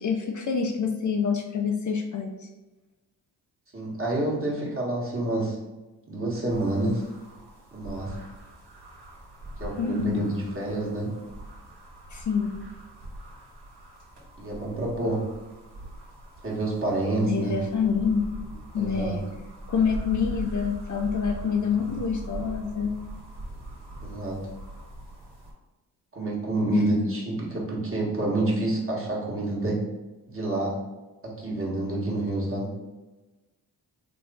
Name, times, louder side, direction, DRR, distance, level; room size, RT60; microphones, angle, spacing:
voice 1, 0.0-2.3 9.8-10.2 12.1-12.5 17.3-18.4 18.7-19.2 19.7-22.9 26.7-27.1, left 6 dB, 45° left, 3 dB, 0.5 m, -26 dB
voice 2, 3.7-5.6 6.1-7.0 7.7-8.2 9.6-11.1 14.4-15.3 16.4-17.6 18.7-19.2 21.8-21.9 24.0-24.5 26.1-29.8 30.3-30.8 31.2-32.7, right 2 dB, 30° right, -4 dB, 1.3 m, -28 dB
sound 1, 6.5-25.5, right 1 dB, 75° right, 1.5 m, -41 dB
3.3 x 2.2 x 4.0 m, 1.1 s
supercardioid pair, 55°, 41 cm